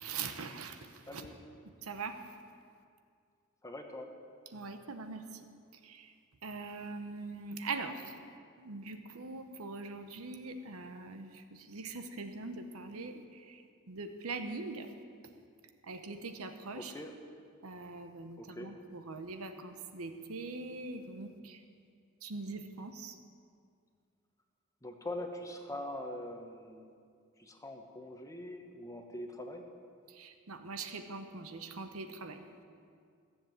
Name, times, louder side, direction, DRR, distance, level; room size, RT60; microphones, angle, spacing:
voice 1, 0.0-1.3 1.8-2.2 4.5-5.4 5.8-6.1 6.4-8.2 8.6-14.9 15.8-16.9 17.6-21.6 22.2-23.2 30.1-32.4, right 3 dB, 80° right, 7 dB, 1.0 m, -42 dB
voice 2, 3.6-4.1 16.8-17.1 18.4-18.8 24.8-26.9 27.4-29.7, left 1 dB, 15° left, 4 dB, 1.0 m, -43 dB
14.5 x 7.6 x 7.6 m, 2.2 s
head